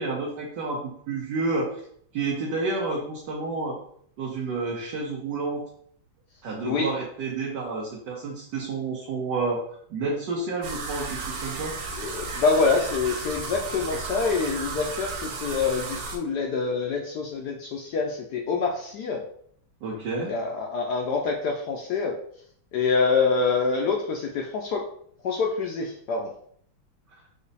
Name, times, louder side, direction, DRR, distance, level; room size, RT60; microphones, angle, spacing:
voice 1, 0.0-1.8 2.1-3.8 4.2-5.7 6.4-9.6 9.9-11.7 19.8-20.3, right 3 dB, 65° right, -3 dB, 1.4 m, -30 dB
sound 1, 10.6-16.2, right 4 dB, 85° right, 1.6 m, -34 dB
voice 2, 11.9-19.2 20.3-22.2 22.7-24.9 25.2-26.3, left 4 dB, 70° left, 1 dB, 1.0 m, -26 dB
5.1 x 2.3 x 4.0 m, 0.63 s
omnidirectional pair, 2.2 m